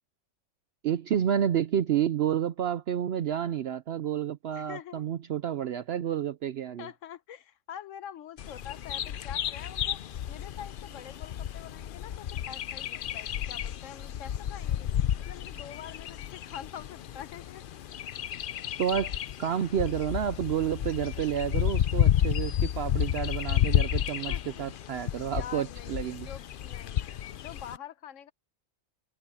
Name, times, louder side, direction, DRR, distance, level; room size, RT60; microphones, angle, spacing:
voice 1, 0.8-6.9 18.8-19.1 19.4-26.3, right 9 dB, 60° right, 0.8 m, -30 dB
voice 2, 4.5-5.0 6.8-10.0 10.3-14.9 15.2-17.6 24.3-24.7 25.2-28.3, left 9 dB, 75° left, 1.2 m, -45 dB
Bird vocalization bird call bird song, 8.4-27.8, left 11 dB, 60° left, 0.6 m, -31 dB
omnidirectional pair, 1.3 m